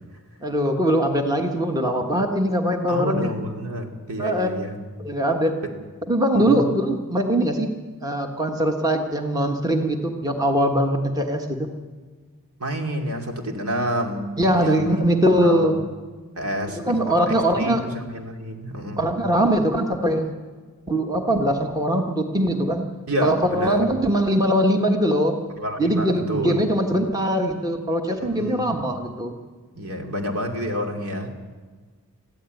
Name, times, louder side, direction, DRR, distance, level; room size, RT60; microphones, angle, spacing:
voice 1, 0.4-3.3 4.2-4.6 5.0-5.6 6.1-7.7 8.0-11.7 14.4-15.8 16.9-17.9 19.0-20.3 20.9-22.8 23.2-25.4 25.8-29.3, right 1 dB, 15° right, 4 dB, 1.4 m, -21 dB
voice 2, 2.9-4.8 6.3-6.8 12.6-15.0 15.4-15.7 16.4-19.1 23.1-23.9 25.6-26.7 28.2-28.8 29.7-31.5, equal, 80° right, 3 dB, 2.8 m, -29 dB
21.5 x 14.5 x 9.2 m, 1.4 s
head